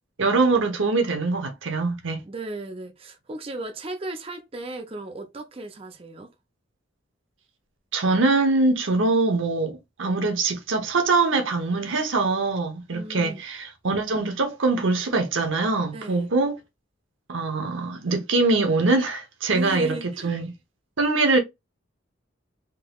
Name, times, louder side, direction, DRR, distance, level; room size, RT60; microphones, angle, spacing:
voice 1, 0.2-2.2 7.9-16.6 17.3-20.0 20.2-20.5 21.0-21.4, right 3 dB, 70° right, 0.8 m, -23 dB
voice 2, 2.2-6.3 12.9-13.4 15.9-16.3 19.5-20.3, right 2 dB, 30° right, 0.5 m, -36 dB
3.7 x 2.9 x 2.3 m
head